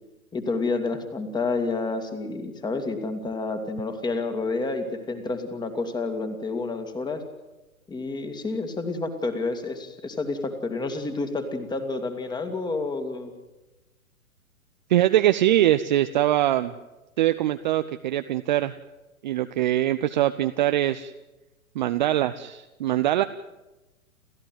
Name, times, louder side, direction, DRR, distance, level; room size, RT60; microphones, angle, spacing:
voice 1, 0.3-7.2 7.9-13.3, left 3 dB, 10° left, 8 dB, 2.4 m, -29 dB
voice 2, 14.9-16.7 17.2-18.7 19.2-21.1 21.7-23.2, right 13 dB, 30° right, 10 dB, 0.7 m, -22 dB
29.5 x 14.5 x 9.3 m, 1.1 s
figure-of-eight pair, 120°, 43 cm